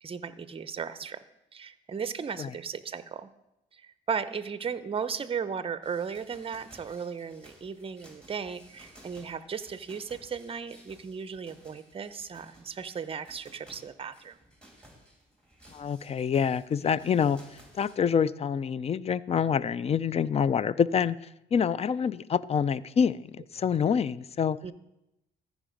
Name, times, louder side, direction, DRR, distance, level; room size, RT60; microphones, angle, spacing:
voice 1, 0.0-1.2 1.5-3.3 3.7-14.4 24.6-24.7, right 6 dB, 30° right, 13 dB, 0.6 m, -36 dB
sound 1, 5.8-18.0, equal, 5° left, 2.4 m, -56 dB
voice 2, 15.7-17.4 17.7-21.2 21.5-24.6, left 7 dB, 30° left, 19 dB, 0.3 m, -26 dB
14.0 x 5.0 x 5.2 m, 0.88 s
cardioid pair, 90°, 20 cm